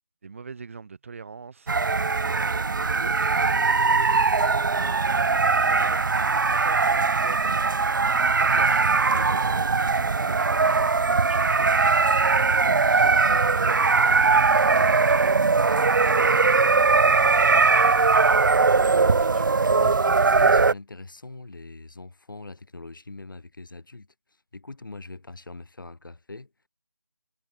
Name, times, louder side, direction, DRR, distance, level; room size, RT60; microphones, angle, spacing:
voice 1, 0.2-1.7 2.2-3.3 3.9-6.2 6.5-7.8 8.3-10.7 11.0-11.9 12.4-15.4 16.0-19.6, right 5 dB, 35° right, 5.3 m, -42 dB
sound 1, 1.7-20.7, right 4 dB, 60° right, 0.4 m, -20 dB
Bass guitar, 13.2-19.4, right 2 dB, 80° right, 2.0 m, -48 dB
voice 2, 19.7-24.1 24.5-26.5, left 3 dB, 65° left, 3.0 m, -42 dB
figure-of-eight pair, 165°, 12 cm